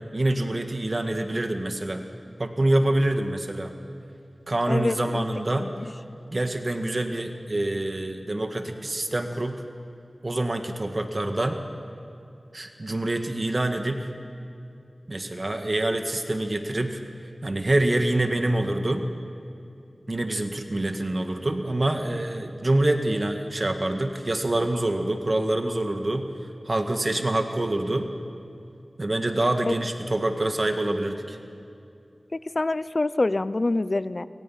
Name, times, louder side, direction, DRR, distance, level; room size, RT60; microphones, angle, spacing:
voice 1, 0.1-2.0 2.4-3.7 4.5-5.7 6.3-9.5 10.2-11.6 12.5-14.1 15.1-17.0 17.4-19.0 20.1-26.3 26.6-28.1 29.0-31.4, right 1 dB, 45° right, 5 dB, 1.7 m, -26 dB
voice 2, 4.7-5.2 5.5-5.8 29.7-29.8 32.5-34.3, left 2 dB, 50° left, 15 dB, 0.7 m, -26 dB
29.5 x 23.5 x 5.8 m, 2.6 s
wide cardioid pair, 55°, 0 cm